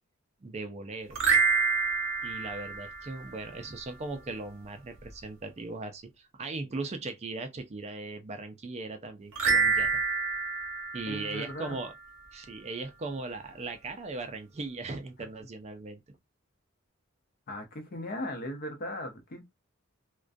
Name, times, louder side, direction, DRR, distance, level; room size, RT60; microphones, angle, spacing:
voice 1, 0.4-1.2 2.2-10.0 10.9-11.9 12.3-16.0, right 3 dB, 30° right, 0.4 m, -38 dB
sound 1, 1.1-3.6 9.3-12.0, right 4 dB, 65° right, 0.8 m, -28 dB
voice 2, 11.1-11.8 17.5-19.4, left 1 dB, 45° left, 0.6 m, -38 dB
2.4 x 2.2 x 2.4 m
head